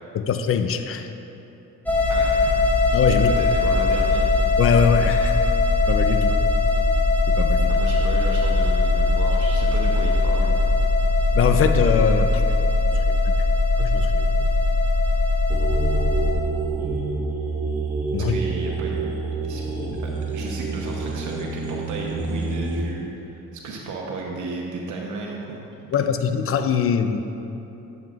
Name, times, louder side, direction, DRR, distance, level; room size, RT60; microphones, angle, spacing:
voice 1, 0.1-1.1 2.9-3.4 4.6-5.4 5.9-6.4 7.3-7.8 11.3-12.4 12.9-13.3 13.8-14.3 18.1-18.4 25.9-27.2, left 7 dB, 45° left, 8 dB, 0.5 m, -22 dB
sound 1, 1.9-16.3, left 2 dB, 5° left, 0.9 m, -20 dB
voice 2, 2.1-2.6 3.2-4.3 7.7-10.7 18.2-19.2 19.4-19.6 20.0-25.6, right 3 dB, 80° right, -1 dB, 0.9 m, -34 dB
sound 2, 15.5-22.8, right 4 dB, 25° right, 1.3 m, -28 dB
9.2 x 7.1 x 2.4 m, 3.0 s
cardioid pair, 90°, 30 cm